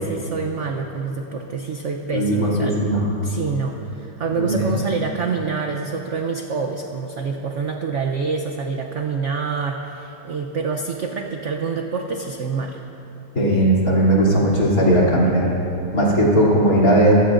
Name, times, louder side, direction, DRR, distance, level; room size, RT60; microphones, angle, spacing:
voice 1, 0.0-2.8 3.2-12.8, right 5 dB, 60° right, 3 dB, 0.8 m, -26 dB
voice 2, 2.1-3.0 4.4-4.7 13.3-15.5 15.9-17.1, right 1 dB, 50° left, -5 dB, 3.5 m, -17 dB
24.0 x 15.0 x 2.6 m, 2.9 s
omnidirectional pair, 2.0 m